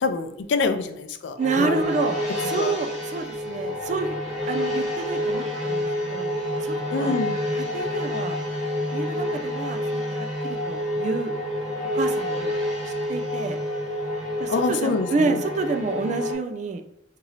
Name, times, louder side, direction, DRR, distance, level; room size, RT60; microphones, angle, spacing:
voice 1, 0.0-2.0 2.6-2.7 6.9-7.4 14.5-15.4, left 4 dB, 75° left, 8 dB, 0.4 m, -26 dB
sound 1, 1.4-16.3, left 1 dB, 5° left, 1.5 m, -28 dB
voice 2, 1.4-4.1 4.5-5.9 6.1-6.3 6.6-7.2 7.5-8.4 8.9-11.3 11.9-12.5 12.9-13.6 14.4-16.8, right 4 dB, 40° right, 7 dB, 0.3 m, -29 dB
2.9 x 2.7 x 4.0 m, 0.84 s
head